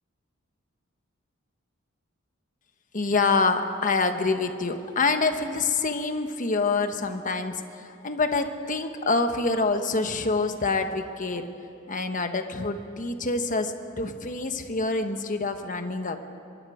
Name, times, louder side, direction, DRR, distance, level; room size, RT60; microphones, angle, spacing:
voice 1, 2.9-11.4 11.9-16.2, left 3 dB, 40° left, 7 dB, 1.3 m, -26 dB
24.0 x 23.0 x 5.0 m, 2.8 s
head